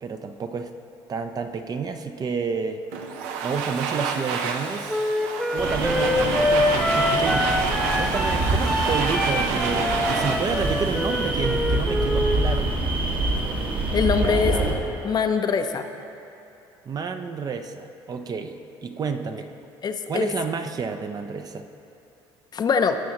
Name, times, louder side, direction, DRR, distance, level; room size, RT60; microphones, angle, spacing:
voice 1, 0.0-0.7 1.1-2.8 3.4-5.0 5.5-7.5 8.0-12.7 16.9-19.5 20.0-21.7, right 5 dB, 40° right, 8 dB, 0.6 m, -30 dB
Domestic sounds home sounds, 2.9-11.8, right 5 dB, 90° right, 0.6 m, -30 dB
Wind instrument woodwind instrument, 4.9-12.4, left 1 dB, ahead, 1.0 m, -25 dB
sound 1, 5.6-14.7, right 2 dB, 55° right, 1.6 m, -26 dB
voice 2, 13.9-14.6 15.0-15.9 19.8-20.3 22.5-23.0, left 6 dB, 40° left, 7 dB, 0.6 m, -23 dB
17.5 x 6.3 x 3.0 m, 2.8 s
supercardioid pair, 85°, 10 cm